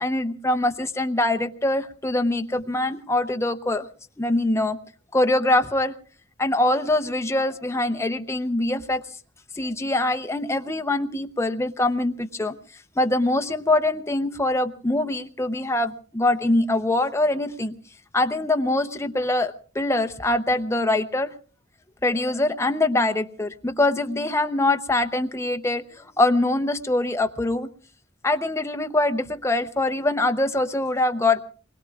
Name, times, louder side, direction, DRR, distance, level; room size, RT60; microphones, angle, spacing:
voice 1, 0.0-3.9 4.2-4.8 5.1-5.9 6.4-9.0 9.6-12.6 13.0-17.7 18.1-21.4 22.0-27.7 28.2-31.4, left 2 dB, 15° left, 7 dB, 0.7 m, -23 dB
27.5 x 21.5 x 2.3 m, 0.39 s
head